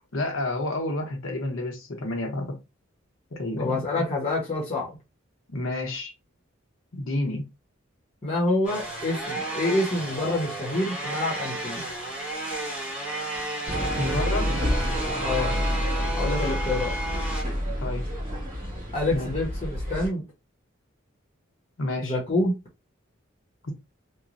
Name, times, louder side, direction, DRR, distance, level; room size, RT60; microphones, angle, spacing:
voice 1, 0.1-2.6 3.3-4.0 5.5-6.1 6.9-7.5 14.0-14.7 17.8-18.1 19.1-19.3 21.8-22.2 23.6-23.7, left 2 dB, 75° left, 0.9 m, -30 dB
voice 2, 3.6-4.9 8.2-11.8 15.2-15.6 16.1-17.0 18.9-20.2 22.0-22.5, left 2 dB, 30° left, 0.9 m, -27 dB
sound 1, 8.6-17.4, right 1 dB, 5° right, 1.0 m, -32 dB
sound 2, 13.7-20.1, equal, 40° right, 1.6 m, -29 dB
3.0 x 2.2 x 2.5 m
head